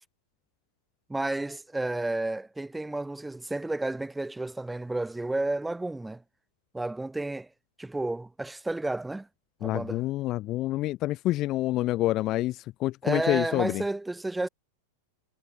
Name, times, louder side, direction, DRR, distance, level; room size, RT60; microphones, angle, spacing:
voice 1, 1.1-6.2 6.7-7.5 7.8-9.3 9.6-10.1 13.0-14.5, right 2 dB, 5° right, 5.0 m, -31 dB
voice 2, 9.6-13.8, left 16 dB, 35° left, 1.2 m, -27 dB
figure-of-eight pair, 90°, 0 cm